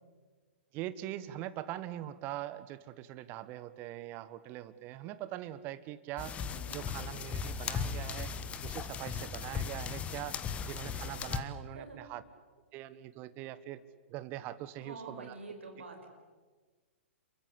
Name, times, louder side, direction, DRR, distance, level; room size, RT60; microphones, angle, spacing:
voice 1, 0.7-6.4 6.7-8.3 8.6-10.4 10.6-12.2 12.7-13.8 14.1-15.4, right 14 dB, 30° right, 14 dB, 1.3 m, -42 dB
sound 1, 6.2-11.4, left 6 dB, 20° left, 1.4 m, -37 dB
voice 2, 6.5-7.0 11.7-12.0 14.8-16.1, right 3 dB, 70° right, 4 dB, 6.0 m, -47 dB
28.5 x 23.0 x 8.3 m, 1.4 s
figure-of-eight pair, 110°, 7 cm